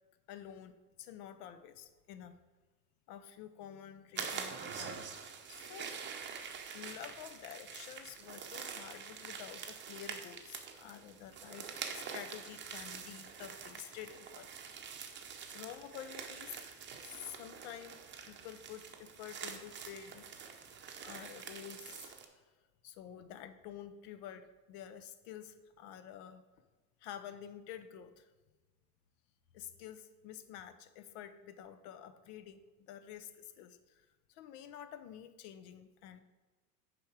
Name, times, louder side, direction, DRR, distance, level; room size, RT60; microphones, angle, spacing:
voice 1, 0.3-2.4 3.1-5.0 5.5-6.0 6.7-14.5 14.8-15.2 15.5-16.6 16.9-20.2 21.0-22.4 22.8-26.4 27.0-28.3 29.5-36.2, left 10 dB, 60° left, 11 dB, 0.8 m, -49 dB
sound 1, 4.1-22.2, right 6 dB, 25° right, 0.7 m, -46 dB
7.0 x 5.0 x 4.6 m, 1.3 s
supercardioid pair, 110°, 50 cm